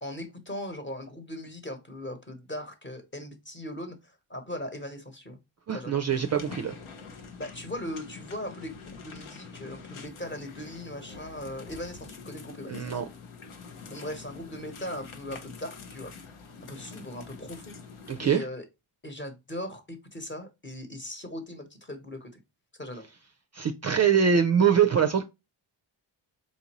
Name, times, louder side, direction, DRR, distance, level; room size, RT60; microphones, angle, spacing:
voice 1, 0.0-5.4 5.7-6.0 7.4-12.8 13.9-16.1 16.7-17.7 18.2-18.7 19.0-22.3 22.7-23.1, left 1 dB, 25° left, 1.0 m, -39 dB
voice 2, 5.7-6.7 12.7-13.0 18.1-18.4 23.5-25.2, right 7 dB, 35° right, 0.4 m, -23 dB
sound 1, 6.1-18.3, left 5 dB, 85° left, 0.9 m, -45 dB
4.2 x 2.6 x 2.9 m
cardioid pair, 85°, 47 cm